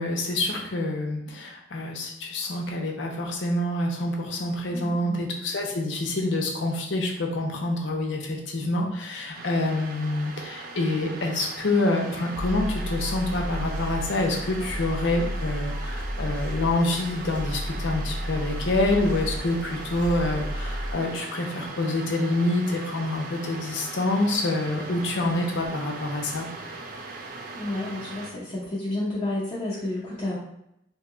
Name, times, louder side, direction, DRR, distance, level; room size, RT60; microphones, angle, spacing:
voice 1, 0.0-26.5, left 2 dB, 70° left, 1 dB, 0.6 m, -27 dB
voice 2, 4.7-5.2 27.5-30.4, left 1 dB, 30° left, -8 dB, 0.6 m, -31 dB
sound 1, 9.3-28.3, right 3 dB, 45° right, 0.3 m, -40 dB
sound 2, 12.3-20.9, equal, 60° right, 1.1 m, -32 dB
2.7 x 2.2 x 3.7 m, 0.80 s
head